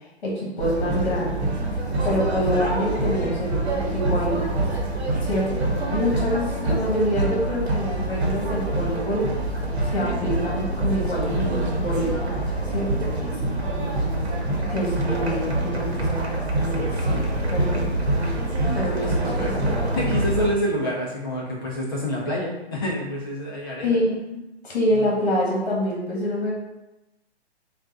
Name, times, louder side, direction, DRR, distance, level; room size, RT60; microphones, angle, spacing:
voice 1, 0.2-1.5 2.0-4.4 5.2-5.5 5.8-9.4 9.8-13.3 14.7-17.9 18.7-19.6 23.8-26.5, equal, 50° left, -4 dB, 1.3 m, -26 dB
sound 1, 0.6-20.5, right 2 dB, 75° right, 1.0 m, -25 dB
voice 2, 13.7-14.2 18.7-19.5 19.9-24.0, equal, 20° left, -4 dB, 0.5 m, -28 dB
3.7 x 2.4 x 3.7 m, 0.96 s
hypercardioid pair, 155°, 33 cm